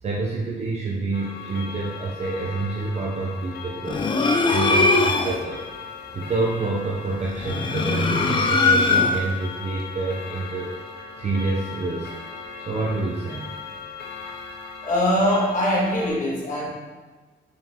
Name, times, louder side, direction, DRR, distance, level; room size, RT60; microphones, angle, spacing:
voice 1, 0.0-4.1 4.5-5.6 6.1-10.8 11.2-12.2 12.7-13.5, right 3 dB, 35° right, -3 dB, 0.6 m, -27 dB
Clock, 1.1-16.1, left 5 dB, 60° left, 0.8 m, -38 dB
sound 1, 3.9-5.5 7.3-9.4, left 3 dB, 25° left, 0.4 m, -20 dB
voice 2, 14.8-16.7, equal, 45° left, -4 dB, 1.6 m, -22 dB
5.5 x 4.9 x 3.6 m, 1.4 s
wide cardioid pair, 180°, 19 cm